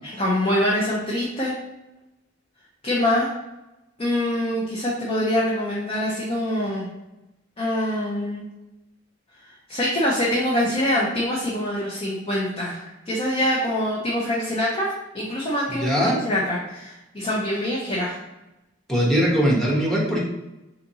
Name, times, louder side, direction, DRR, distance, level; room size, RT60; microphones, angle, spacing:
voice 1, 0.0-1.5 2.8-3.3 4.0-6.9 7.6-8.5 9.7-14.9 15.1-18.2, left 1 dB, 30° left, -6 dB, 0.8 m, -24 dB
voice 2, 15.7-16.2 18.9-20.2, equal, ahead, -4 dB, 1.1 m, -21 dB
4.1 x 4.0 x 2.8 m, 0.96 s
head